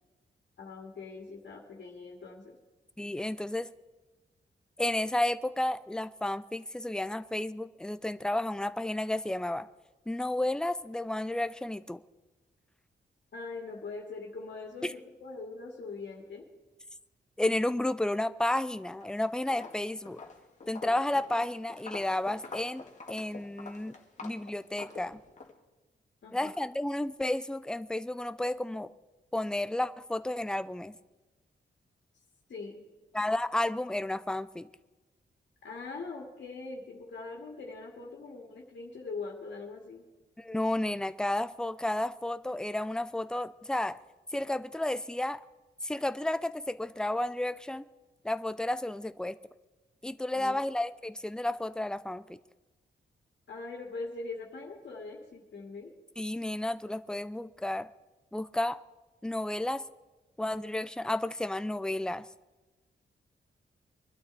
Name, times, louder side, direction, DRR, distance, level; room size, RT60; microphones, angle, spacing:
voice 1, 0.6-2.6 13.3-16.4 26.2-26.5 32.5-32.8 35.6-40.0 50.3-50.6 53.5-55.9, left 3 dB, 75° left, -1 dB, 2.3 m, -42 dB
voice 2, 3.0-3.7 4.8-9.7 10.1-12.0 14.8-14.9 17.4-20.2 20.7-24.0 24.2-25.2 26.3-28.9 29.3-30.9 33.1-34.7 40.4-44.0 44.3-45.4 45.8-47.9 48.2-49.4 50.0-52.4 56.2-57.9 58.3-58.8 59.2-59.8 60.4-62.3, left 1 dB, 5° left, 13 dB, 0.5 m, -32 dB
Walk footsteps, 18.9-19.2 19.5-25.5, left 4 dB, 40° left, 1.8 m, -46 dB
23.5 x 12.0 x 4.1 m, 1.1 s
wide cardioid pair, 130°, 19 cm